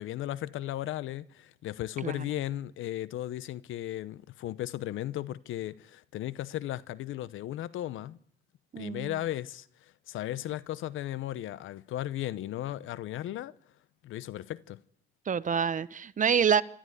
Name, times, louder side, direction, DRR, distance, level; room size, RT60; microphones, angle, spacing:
voice 1, 0.0-8.2 8.8-9.7 10.1-13.5 14.0-14.8, left 13 dB, 80° left, 0.8 m, -36 dB
voice 2, 8.7-9.1 15.3-16.6, right 7 dB, 40° right, 0.9 m, -26 dB
27.5 x 12.5 x 9.4 m
cardioid pair, 90°, 20 cm